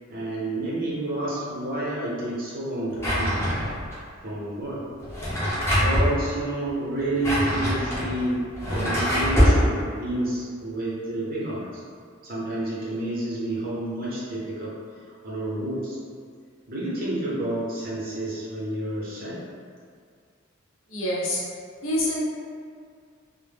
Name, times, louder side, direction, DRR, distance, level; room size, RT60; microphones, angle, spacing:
voice 1, 0.1-3.6 4.2-4.9 5.7-11.7 12.2-14.8 15.2-16.0 16.7-19.4, right 1 dB, 45° right, -7 dB, 0.7 m, -29 dB
Drawer open or close, 3.0-3.9 5.0-6.1 7.0-9.6, equal, 15° left, 0.6 m, -23 dB
voice 2, 20.9-21.4 21.8-22.2, left 1 dB, 70° left, -5 dB, 0.6 m, -26 dB
2.1 x 2.0 x 3.3 m, 2.1 s
head